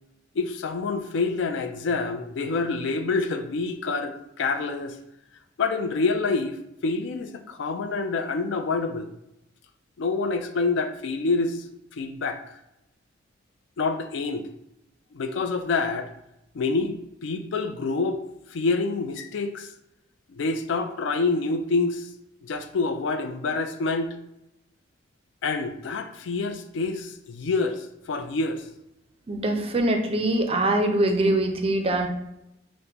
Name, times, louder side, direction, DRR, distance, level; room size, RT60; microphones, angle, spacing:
voice 1, 0.3-5.0 5.6-6.6 6.8-9.1 10.0-12.4 13.8-14.5 15.1-16.1 16.5-18.2 18.5-19.7 20.3-22.1 22.4-24.2 25.4-28.6, left 3 dB, 70° left, 8 dB, 0.4 m, -27 dB
voice 2, 29.3-32.1, right 1 dB, 30° right, 4 dB, 0.4 m, -23 dB
5.0 x 2.1 x 2.9 m, 0.86 s
head